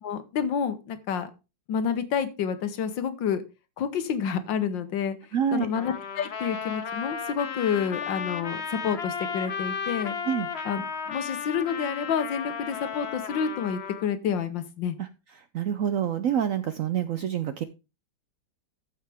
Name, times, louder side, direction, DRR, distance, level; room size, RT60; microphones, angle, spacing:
voice 1, 0.0-1.3 1.7-3.4 3.8-5.2 5.5-10.2 10.7-10.8 11.1-15.0, left 7 dB, 85° left, 11 dB, 1.7 m, -29 dB
voice 2, 5.3-5.7 10.3-10.5 15.0-15.1 15.5-17.6, right 9 dB, 70° right, 12 dB, 0.7 m, -27 dB
Trumpet, 5.7-14.1, left 6 dB, 45° left, 1.0 m, -34 dB
14.0 x 5.6 x 3.5 m, 0.28 s
omnidirectional pair, 2.0 m